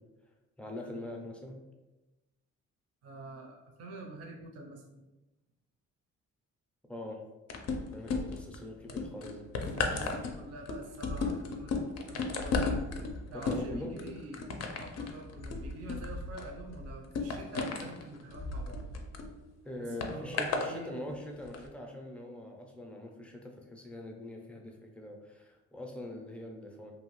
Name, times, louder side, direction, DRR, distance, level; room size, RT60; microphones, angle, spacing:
voice 1, 0.6-1.6 6.9-7.2 7.9-9.5 13.3-14.0 19.6-26.9, left 1 dB, 5° left, 1 dB, 0.5 m, -43 dB
voice 2, 3.0-5.0 9.8-12.8 13.3-18.8 19.8-20.9, right 2 dB, 55° right, 1 dB, 0.5 m, -46 dB
sound 1, 7.5-8.5 8.9-19.3 20.0-20.7 21.4-21.6, left 4 dB, 55° left, 0.5 m, -34 dB
2.7 x 2.3 x 3.0 m, 1.1 s
cardioid pair, 90°, 30 cm